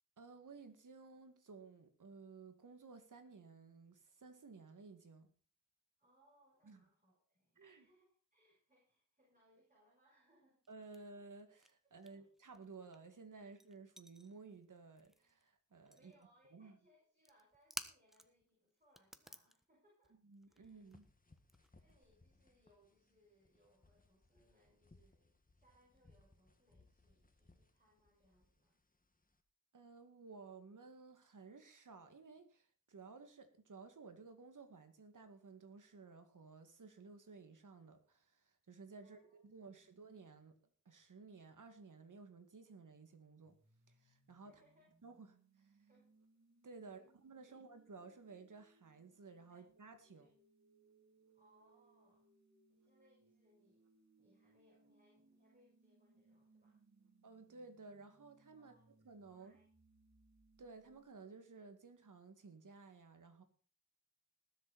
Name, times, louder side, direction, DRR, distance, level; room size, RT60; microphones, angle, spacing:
voice 1, 0.2-5.3 6.6-6.8 7.6-7.9 10.7-16.1 16.5-16.8 20.2-21.1 29.7-40.6 40.9-43.6 43.9-44.5 45.0-45.8 46.6-50.3 57.2-59.6 60.6-63.4, right 4 dB, 90° right, 8 dB, 2.2 m, -56 dB
voice 2, 6.0-10.6 12.0-12.3 13.4-13.5 15.9-20.2 20.5-20.8 21.8-28.8 39.0-40.0 44.4-44.9 45.9-46.1 46.8-47.1 47.4-47.6 49.5-49.7 50.1-50.3 51.3-52.4 52.7-53.8 54.2-56.8 58.6-58.9 59.3-59.7, equal, 25° right, -4 dB, 6.8 m, -73 dB
sound 1, 10.7-11.7 12.0-15.5 15.7-16.3 17.2-18.5 18.8-22.1, equal, ahead, 1.4 m, -53 dB
sound 2, 20.6-29.4, left 2 dB, 30° left, 1.8 m, -70 dB
sound 3, 43.4-61.1, right 3 dB, 65° right, 2.9 m, -72 dB
20.0 x 8.0 x 4.3 m, 0.40 s
wide cardioid pair, 60°, 30 cm